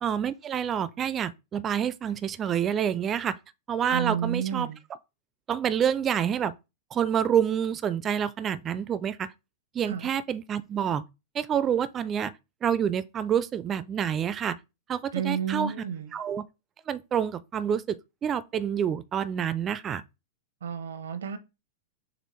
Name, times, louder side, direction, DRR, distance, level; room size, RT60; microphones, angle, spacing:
voice 1, 0.0-3.4 3.7-4.7 5.5-6.5 6.9-9.3 9.7-11.0 11.3-12.3 12.6-14.6 14.9-15.7 16.1-16.4 16.9-20.0, right 8 dB, 25° right, 0.4 m, -28 dB
voice 2, 3.9-4.8 9.9-10.1 15.1-16.1 20.6-21.4, right 8 dB, 90° right, 0.7 m, -31 dB
6.7 x 2.4 x 3.2 m
hypercardioid pair, 125°, 0 cm